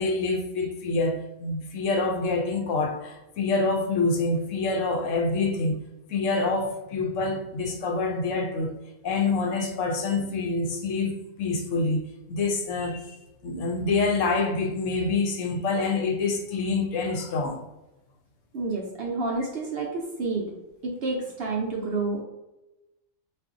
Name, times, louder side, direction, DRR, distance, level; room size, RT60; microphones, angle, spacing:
voice 1, 0.0-5.8 6.1-8.8 9.0-13.2 13.4-17.6, left 3 dB, 70° left, 0.9 m, -26 dB
voice 2, 18.5-20.5 20.8-22.2, right 3 dB, 60° right, 0.7 m, -29 dB
2.5 x 2.5 x 3.6 m
omnidirectional pair, 1.4 m